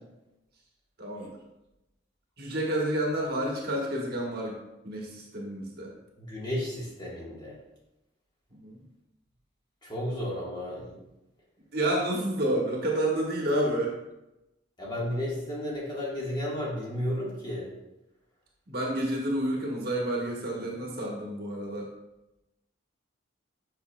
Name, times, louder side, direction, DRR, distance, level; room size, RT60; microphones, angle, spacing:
voice 1, 1.0-1.3 2.4-4.6 4.8-5.9 8.6-8.8 11.7-13.9 18.7-21.9, right 1 dB, 50° right, -2 dB, 1.3 m, -29 dB
voice 2, 6.2-7.5 9.8-10.9 14.8-17.7, left 1 dB, 20° left, -5 dB, 1.5 m, -33 dB
7.8 x 5.7 x 2.3 m, 0.94 s
head